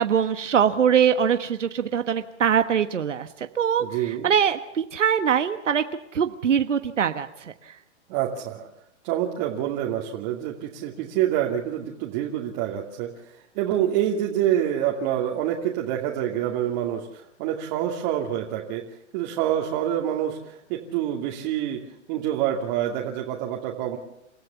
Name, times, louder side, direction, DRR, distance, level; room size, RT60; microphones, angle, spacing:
voice 1, 0.0-5.8 6.1-7.5, right 8 dB, 90° right, 9 dB, 1.4 m, -23 dB
voice 2, 3.8-4.3 8.1-8.7 9.0-18.8 19.1-21.8 22.1-24.0, right 11 dB, 35° right, -1 dB, 2.7 m, -27 dB
29.5 x 14.5 x 7.0 m, 0.83 s
hypercardioid pair, 135°, 36 cm